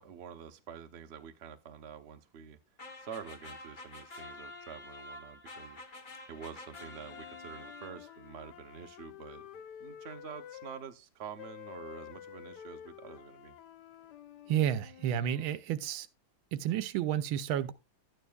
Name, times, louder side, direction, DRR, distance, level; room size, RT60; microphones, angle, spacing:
voice 1, 0.0-2.6 3.0-5.8 6.3-13.5, right 7 dB, 55° right, 0.7 m, -47 dB
sound 1, 2.8-8.3, left 2 dB, 35° left, 0.8 m, -48 dB
sound 2, 6.7-10.8 11.4-15.6, left 10 dB, 70° left, 1.1 m, -50 dB
voice 2, 14.5-16.1 16.5-17.7, right 10 dB, 85° right, 1.5 m, -31 dB
12.5 x 9.0 x 2.3 m
omnidirectional pair, 2.2 m